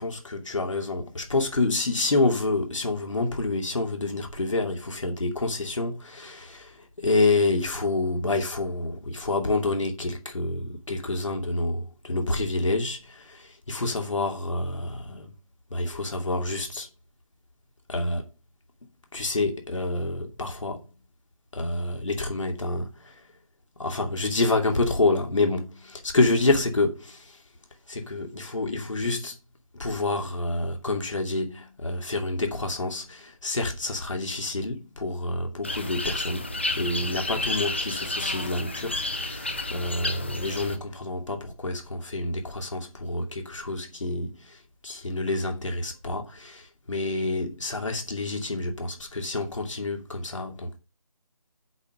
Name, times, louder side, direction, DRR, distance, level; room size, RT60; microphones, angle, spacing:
voice 1, 0.0-15.3 15.7-16.9 17.9-18.3 19.1-20.8 21.5-23.2 23.8-27.4 27.9-29.4 29.7-50.8, left 2 dB, 60° left, 2.6 m, -28 dB
sound 1, 35.6-40.8, left 2 dB, 20° left, 0.7 m, -31 dB
8.1 x 5.6 x 6.5 m
figure-of-eight pair, 180°, 18 cm